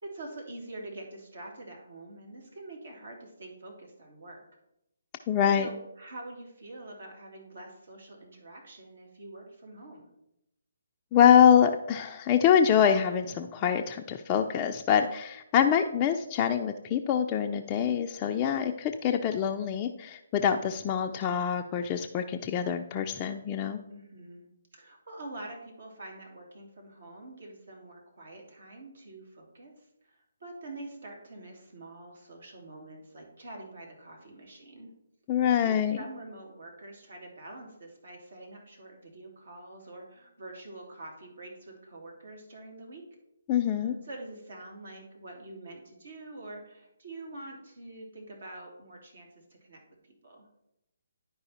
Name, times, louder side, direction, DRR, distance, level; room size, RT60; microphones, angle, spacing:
voice 1, 0.0-4.4 5.5-10.0 23.9-24.5 24.7-34.9 35.6-43.0 43.8-49.3 49.6-50.5, right 2 dB, 70° right, 0 dB, 2.8 m, -46 dB
voice 2, 5.3-5.7 11.1-23.8 35.3-36.0 43.5-43.9, left 8 dB, 25° left, 3 dB, 0.4 m, -25 dB
10.5 x 4.8 x 4.2 m, 0.84 s
figure-of-eight pair, 145°, 0 cm